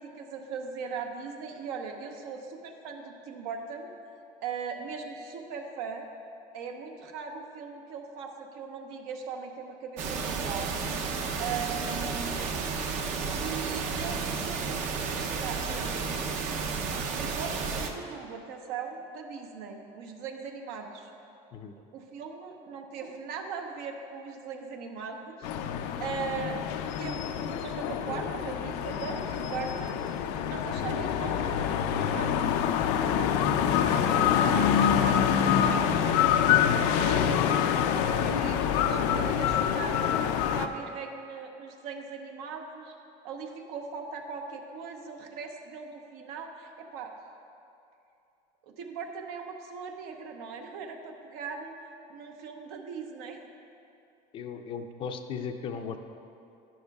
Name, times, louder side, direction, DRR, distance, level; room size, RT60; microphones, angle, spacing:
voice 1, 0.0-3.9 4.4-6.0 6.5-10.7 11.4-12.5 13.3-14.9 15.3-16.2 17.0-21.1 21.9-26.6 27.0-30.0 30.4-31.7 32.0-32.3 33.2-35.9 36.2-37.8 38.2-40.1 40.5-42.9 43.2-47.2 48.6-51.7 52.1-53.4, right 5 dB, 75° right, 3 dB, 0.9 m, -39 dB
sound 1, 10.0-17.9, right 5 dB, 50° right, 0.7 m, -32 dB
sound 2, 25.4-40.7, left 8 dB, 90° left, 0.5 m, -26 dB
voice 2, 54.3-56.0, left 6 dB, 35° left, 7 dB, 0.4 m, -36 dB
11.5 x 10.5 x 2.3 m, 2.6 s
cardioid pair, 165°, 15 cm